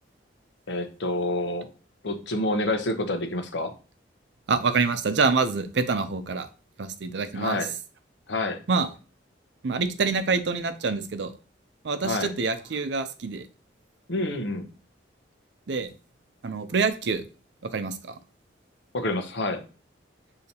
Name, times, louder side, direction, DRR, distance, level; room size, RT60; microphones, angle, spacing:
voice 1, 0.7-1.7 2.0-3.7 7.3-7.7 8.3-8.6 12.0-12.3 14.1-14.7 18.9-19.6, left 2 dB, 75° left, 6 dB, 0.8 m, -28 dB
voice 2, 4.5-6.5 6.8-7.6 8.7-8.9 9.6-11.3 11.8-13.5 15.7-15.9 16.4-17.2 17.6-18.1, right 4 dB, 70° right, 11 dB, 0.5 m, -26 dB
6.6 x 2.8 x 2.8 m, 0.35 s
head